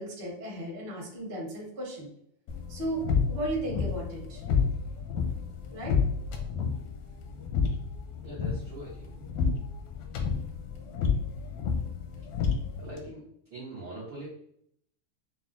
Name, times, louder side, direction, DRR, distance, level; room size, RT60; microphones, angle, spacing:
voice 1, 0.0-2.1 2.7-4.4 5.7-6.0, right 1 dB, 45° right, -6 dB, 0.6 m, -35 dB
sound 1, 2.5-13.0, left 6 dB, 80° left, 1.7 m, -30 dB
voice 2, 8.2-9.1 12.8-13.2 13.5-14.4, right 1 dB, 80° right, -7 dB, 1.0 m, -42 dB
5.9 x 2.0 x 2.6 m, 0.69 s
omnidirectional pair, 3.7 m